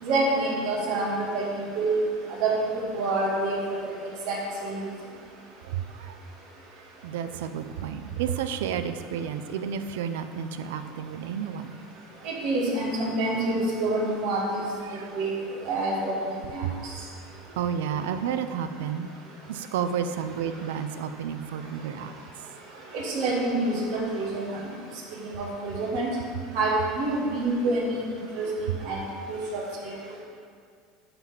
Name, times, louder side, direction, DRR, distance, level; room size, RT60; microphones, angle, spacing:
voice 1, 0.0-1.5 1.7-2.0 2.4-2.6 2.9-3.8 4.3-4.8 12.2-14.7 15.2-15.3 15.6-16.1 16.5-16.6 22.9-24.6 25.3-26.1 26.5-28.0 28.4-28.5 28.8-29.0 29.3-29.6, right 2 dB, 65° right, -4 dB, 2.6 m, -27 dB
voice 2, 5.6-6.2 7.0-11.8 14.8-15.2 16.6-16.8 17.6-19.2 19.5-22.1 24.5-24.6 28.7-28.8 30.0-30.2, right 8 dB, 80° right, 10 dB, 0.5 m, -31 dB
9.6 x 4.2 x 7.0 m, 2.2 s
supercardioid pair, 100°, 0 cm